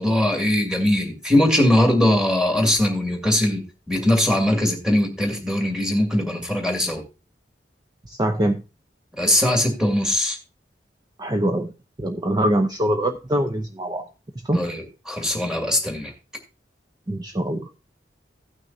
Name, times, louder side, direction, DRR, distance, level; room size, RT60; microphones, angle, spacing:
voice 1, 0.0-3.6 3.9-7.0 9.2-10.4 14.5-16.1, left 1 dB, 5° right, 2 dB, 2.0 m, -21 dB
voice 2, 8.1-8.6 11.2-11.7 12.0-14.1 14.4-14.7 17.1-17.7, right 1 dB, 25° right, 5 dB, 0.6 m, -23 dB
16.5 x 6.2 x 2.7 m, 0.28 s
head